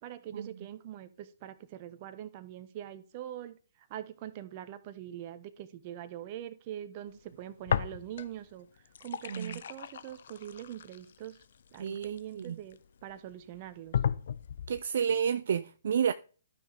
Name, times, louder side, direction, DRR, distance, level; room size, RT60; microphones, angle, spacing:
voice 1, 0.0-8.7 9.0-11.4 11.7-14.0, right 11 dB, 35° right, 1.0 m, -43 dB
sound 1, 7.7-8.4 8.8-12.7 13.3-13.4 13.9-14.8, left 8 dB, 55° left, 0.6 m, -34 dB
voice 2, 9.3-9.6 11.8-12.6 14.7-16.1, right 7 dB, 60° right, 0.4 m, -30 dB
12.5 x 6.0 x 3.4 m
figure-of-eight pair, 125°, 0 cm